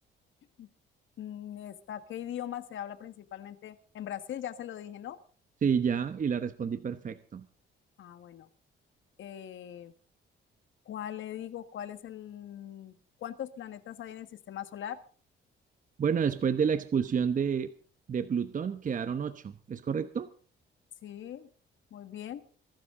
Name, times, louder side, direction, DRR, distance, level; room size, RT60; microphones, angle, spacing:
voice 1, 1.2-5.2 8.0-8.5 9.2-9.9 10.8-12.9 13.2-15.0 21.0-21.5 21.9-22.5, left 10 dB, 70° left, 11 dB, 1.6 m, -40 dB
voice 2, 5.6-7.5 16.0-17.7 18.1-20.3, right 7 dB, 40° right, 11 dB, 1.0 m, -29 dB
23.5 x 12.5 x 3.8 m, 0.41 s
cardioid pair, 105°, 20 cm